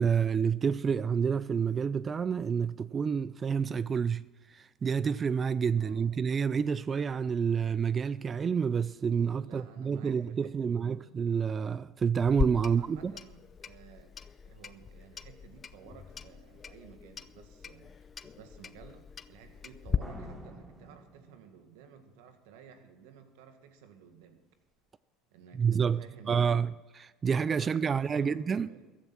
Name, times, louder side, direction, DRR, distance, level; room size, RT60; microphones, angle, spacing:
voice 1, 0.0-13.1 25.5-26.0 26.3-28.7, right 6 dB, 30° right, 0.4 m, -29 dB
voice 2, 5.8-6.1 9.3-11.2 12.6-14.1 14.4-24.4 25.3-26.7 27.2-28.9, right 7 dB, 80° right, 1.7 m, -54 dB
Clock, 12.2-20.0, left 6 dB, 30° left, 0.6 m, -38 dB
Slam, 20.0-21.9, equal, 5° right, 5.5 m, -47 dB
14.5 x 11.0 x 6.1 m
supercardioid pair, 95°, 0 cm